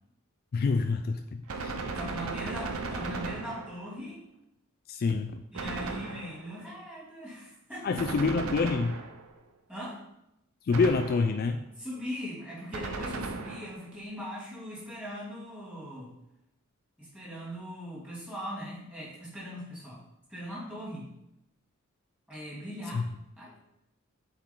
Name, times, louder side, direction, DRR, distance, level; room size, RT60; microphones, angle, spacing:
voice 1, 0.5-1.7 4.9-5.4 7.8-9.0 10.7-11.6 22.9-23.0, left 4 dB, 45° left, 6 dB, 0.3 m, -27 dB
voice 2, 1.5-4.2 5.5-8.2 9.7-10.0 11.8-16.1 17.0-20.0 20.3-21.1 22.3-23.1 23.4-23.6, equal, 5° right, -7 dB, 2.6 m, -40 dB
Gunshot gunfire, 1.5-4.0 5.5-6.6 8.0-9.4 10.7-11.5 12.7-13.9, right 3 dB, 85° right, 0.7 m, -36 dB
7.3 x 4.6 x 3.8 m, 0.84 s
head